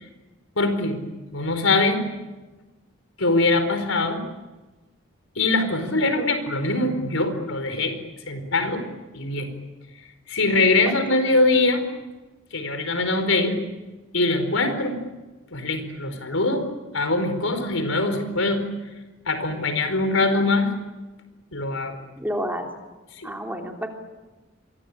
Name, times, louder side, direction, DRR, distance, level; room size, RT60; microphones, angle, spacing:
voice 1, 0.6-1.0 1.3-2.0 3.2-4.2 5.4-8.0 8.3-8.8 9.1-9.5 10.3-11.8 12.5-13.6 14.1-15.0 15.5-16.6 16.9-18.6 19.3-20.7 21.5-22.0 23.2-23.3, left 2 dB, 85° left, 8 dB, 4.7 m, -22 dB
voice 2, 22.2-22.7 23.2-23.9, equal, 10° right, 2 dB, 3.2 m, -30 dB
29.0 x 23.5 x 8.7 m, 1.2 s
head